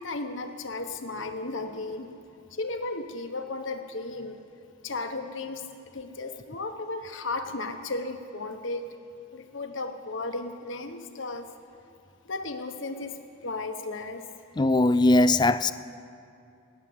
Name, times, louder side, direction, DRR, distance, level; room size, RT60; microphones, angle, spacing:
voice 1, 0.0-2.1 2.5-4.4 4.8-5.7 5.9-8.8 9.3-11.5 12.2-14.3, left 3 dB, 65° left, 1.1 m, -35 dB
voice 2, 14.6-15.7, left 2 dB, 20° left, 0.3 m, -20 dB
18.0 x 7.5 x 9.5 m
head